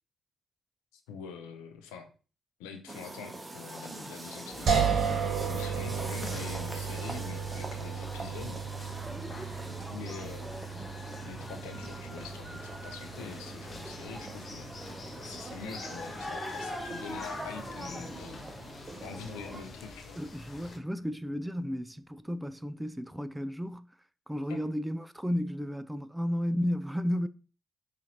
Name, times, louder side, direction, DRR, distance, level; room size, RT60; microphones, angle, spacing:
voice 1, 0.9-2.1 2.6-8.7 9.9-10.5 11.2-14.7 15.2-18.8 19.0-20.2 24.5-24.6, left 6 dB, 85° left, 0.4 m, -45 dB
sound 1, 2.9-19.6, right 2 dB, 25° right, 0.7 m, -43 dB
sound 2, 4.5-20.8, left 3 dB, 50° left, 0.7 m, -45 dB
sound 3, 4.7-17.7, right 6 dB, 65° right, 0.9 m, -35 dB
voice 2, 20.2-23.9 24.3-27.3, equal, 10° right, 0.3 m, -33 dB
4.1 x 2.5 x 2.8 m
hypercardioid pair, 45°, 0 cm